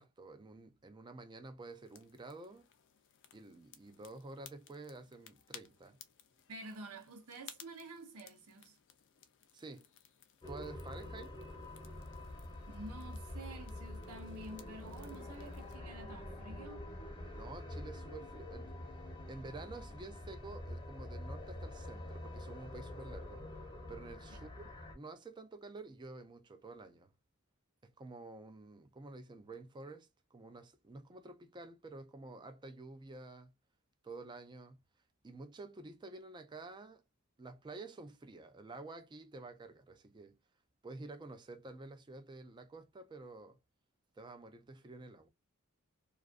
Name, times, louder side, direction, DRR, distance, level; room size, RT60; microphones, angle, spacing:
voice 1, 0.0-2.7 3.3-6.0 9.5-9.9 10.5-11.4 15.1-15.2 17.3-18.7 19.3-23.4 23.9-27.1 27.8-33.5 34.0-34.8 35.2-37.0 37.4-40.4 40.8-43.6 44.2-45.3, right 3 dB, 20° right, 0.4 m, -50 dB
sound 1, 1.7-15.8, left 9 dB, 55° left, 0.4 m, -60 dB
voice 2, 6.5-8.8 12.7-16.9 24.3-24.4, right 2 dB, 85° right, 0.7 m, -49 dB
sound 2, 10.4-25.0, left 1 dB, 20° left, 0.7 m, -46 dB
2.4 x 2.3 x 2.4 m
head